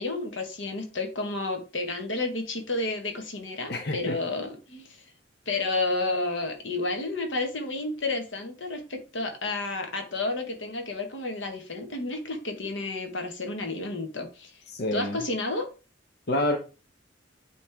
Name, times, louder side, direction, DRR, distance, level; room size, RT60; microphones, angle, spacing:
voice 1, 0.0-5.0 5.5-14.5 14.9-15.7, left 2 dB, 90° left, 1.3 m, -31 dB
voice 2, 3.7-4.2 14.7-15.2 16.3-16.6, left 1 dB, 60° left, 0.8 m, -27 dB
8.6 x 3.2 x 3.4 m
head